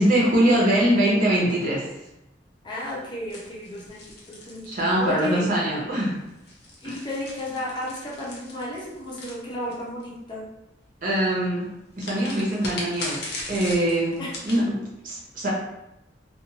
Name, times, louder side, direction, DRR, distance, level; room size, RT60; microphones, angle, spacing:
voice 1, 0.0-1.9 4.7-6.2 6.8-7.0 11.0-11.7 12.0-15.5, right 1 dB, 50° right, -5 dB, 0.9 m, -23 dB
voice 2, 2.6-4.7 5.0-5.4 6.8-10.4 14.2-14.3, left 1 dB, 25° left, -5 dB, 0.6 m, -33 dB
sound 1, 3.3-5.3 6.3-10.0 12.0-14.6, left 1 dB, 65° left, 0.7 m, -38 dB
2.5 x 2.4 x 2.9 m, 0.90 s
head